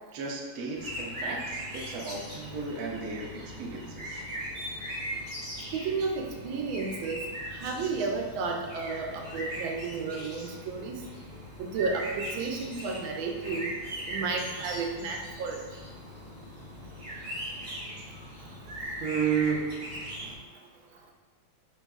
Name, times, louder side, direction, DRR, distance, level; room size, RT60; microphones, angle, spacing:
voice 1, 0.1-4.2 19.0-20.1, right 6 dB, 65° right, -1 dB, 0.8 m, -33 dB
sound 1, 0.8-20.3, equal, 35° right, 1.0 m, -39 dB
voice 2, 5.7-7.2 7.5-11.0 11.6-13.7 14.1-15.6, right 4 dB, 80° right, 2 dB, 1.4 m, -32 dB
4.6 x 4.4 x 2.3 m, 1.4 s
omnidirectional pair, 2.2 m